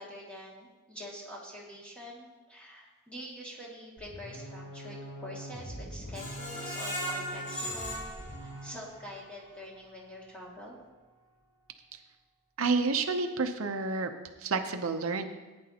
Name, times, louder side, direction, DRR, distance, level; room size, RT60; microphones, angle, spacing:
voice 1, 0.0-8.1 8.4-10.8, equal, 5° left, -5 dB, 2.1 m, -45 dB
sound 1, 4.0-8.8, equal, 50° left, 3.1 m, -44 dB
Screech, 6.1-9.1 9.6-9.7 10.1-10.2, equal, 35° left, 2.0 m, -38 dB
voice 2, 12.6-14.1 14.4-15.3, right 4 dB, 75° right, 6 dB, 0.7 m, -29 dB
15.5 x 9.6 x 2.9 m, 1.2 s
head